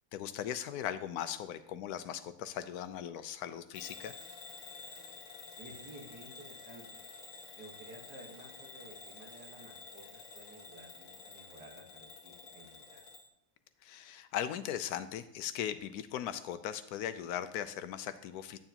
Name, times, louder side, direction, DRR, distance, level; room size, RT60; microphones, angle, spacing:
voice 1, 0.1-4.1 13.8-18.6, left 10 dB, 75° left, 11 dB, 1.1 m, -38 dB
Bell / Alarm, 3.7-13.3, left 4 dB, 60° left, 1.3 m, -50 dB
voice 2, 5.6-6.8 7.6-13.0, right 1 dB, 85° right, -1 dB, 2.1 m, -53 dB
9.2 x 8.8 x 2.9 m, 0.77 s
omnidirectional pair, 1.6 m